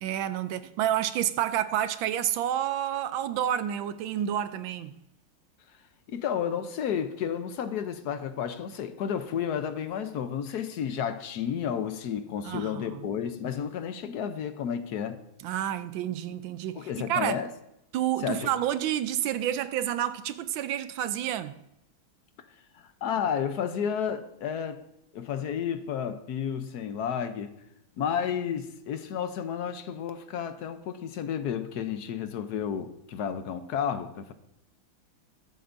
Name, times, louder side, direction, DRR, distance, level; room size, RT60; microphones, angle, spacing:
voice 1, 0.0-4.9 12.4-13.0 15.4-17.4 17.9-21.6, right 11 dB, 75° right, 1.3 m, -29 dB
voice 2, 6.1-15.2 16.7-17.5 18.2-18.5 22.7-24.8 25.1-27.5 28.0-34.3, left 8 dB, 65° left, 1.1 m, -31 dB
20.5 x 8.0 x 2.6 m
omnidirectional pair, 2.3 m